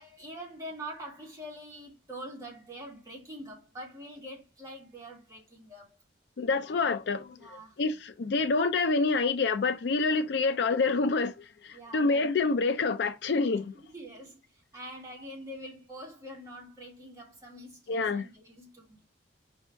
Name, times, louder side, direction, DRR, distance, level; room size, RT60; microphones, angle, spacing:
voice 1, 0.0-6.0 7.3-7.8 11.7-12.1 13.7-19.0, equal, 20° right, 1.6 m, -45 dB
voice 2, 6.4-13.7 17.9-18.3, left 4 dB, 65° left, 0.4 m, -27 dB
5.3 x 2.6 x 3.3 m
head